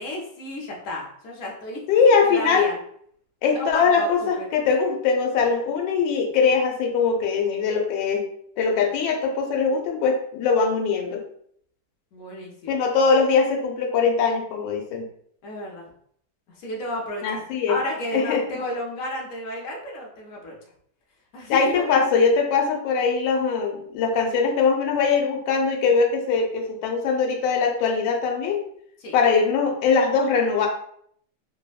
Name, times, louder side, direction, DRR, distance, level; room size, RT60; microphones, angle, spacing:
voice 1, 0.0-1.8 2.2-2.8 3.5-4.5 12.1-12.8 15.4-15.8 16.6-17.4 17.7-20.6 21.3-21.9 29.0-29.2, left 1 dB, 60° left, -1 dB, 0.9 m, -32 dB
voice 2, 1.9-2.6 3.4-8.3 8.6-11.2 12.7-15.0 17.2-17.8 18.1-18.4 21.5-28.6 29.1-30.7, left 5 dB, 85° left, 2 dB, 1.3 m, -21 dB
3.3 x 2.0 x 2.2 m, 0.65 s
omnidirectional pair, 1.9 m